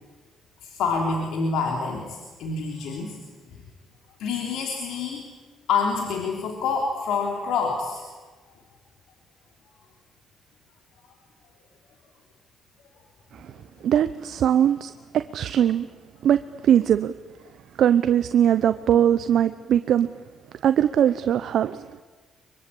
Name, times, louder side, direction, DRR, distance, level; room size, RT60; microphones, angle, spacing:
voice 1, 0.6-3.2 4.2-5.2 5.7-8.0, left 5 dB, 85° left, 1 dB, 3.3 m, -27 dB
voice 2, 13.8-15.9 16.2-17.1 17.8-20.1 20.6-22.0, right 10 dB, 70° right, 11 dB, 0.7 m, -21 dB
24.0 x 24.0 x 8.5 m, 1.3 s
cardioid pair, 90°, 0 cm